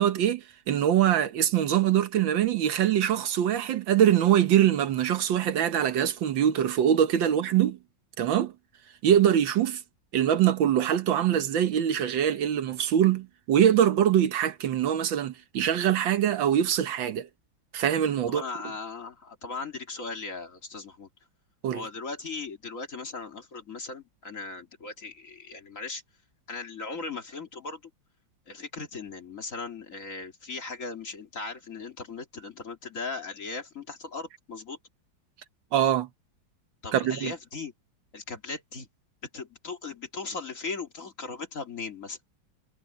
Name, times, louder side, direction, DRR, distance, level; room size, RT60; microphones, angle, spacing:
voice 1, 0.0-7.8 8.2-8.5 9.0-9.8 10.1-17.3 17.7-18.4 21.6-21.8 35.7-36.1 36.9-37.3, right 10 dB, 75° right, 1.7 m, -23 dB
voice 2, 18.3-21.1 21.7-26.0 26.5-27.8 28.5-34.8 36.8-37.7 38.1-38.9 39.3-42.2, left 4 dB, 40° left, 2.5 m, -38 dB
omnidirectional pair, 2.1 m